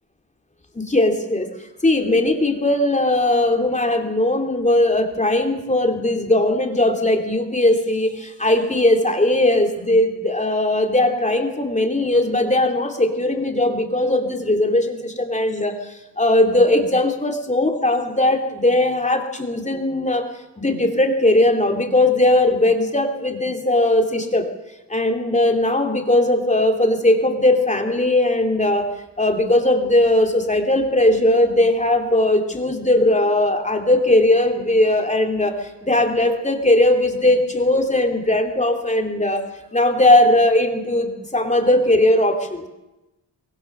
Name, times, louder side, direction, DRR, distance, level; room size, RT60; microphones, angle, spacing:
voice 1, 0.8-1.5 1.8-15.8 16.2-20.3 20.6-24.5 24.9-28.9 29.2-35.6 35.8-39.4 39.7-42.7, left 1 dB, 15° left, 4 dB, 2.8 m, -19 dB
25.0 x 21.5 x 6.7 m, 0.97 s
wide cardioid pair, 175°, 45 cm